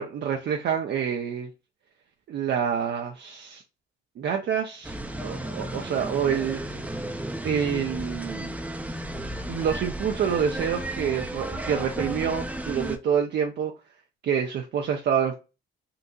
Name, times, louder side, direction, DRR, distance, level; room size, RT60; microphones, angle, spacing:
voice 1, 0.0-1.5 2.3-3.6 4.2-5.0 5.2-6.6 7.4-8.5 9.5-13.7 14.2-15.4, right 7 dB, 60° right, 0.5 m, -27 dB
sound 1, 4.8-13.0, right 1 dB, 5° right, 0.5 m, -33 dB
3.8 x 2.6 x 2.3 m
cardioid pair, 90°, 20 cm